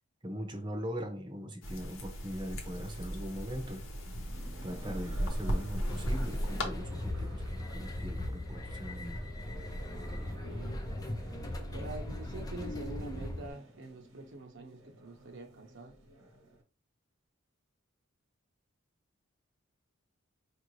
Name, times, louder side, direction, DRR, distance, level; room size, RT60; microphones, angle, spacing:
voice 1, 0.2-3.8 4.6-9.3, equal, 20° right, 0.7 m, -40 dB
sound 1, 1.6-6.6, equal, 70° left, 0.9 m, -36 dB
sound 2, 2.7-16.6, right 1 dB, 75° right, 1.1 m, -54 dB
sound 3, 5.9-13.5, left 1 dB, 20° left, 0.5 m, -39 dB
voice 2, 10.4-10.8 11.6-15.9, right 2 dB, 60° right, 0.7 m, -46 dB
4.8 x 2.6 x 3.1 m
head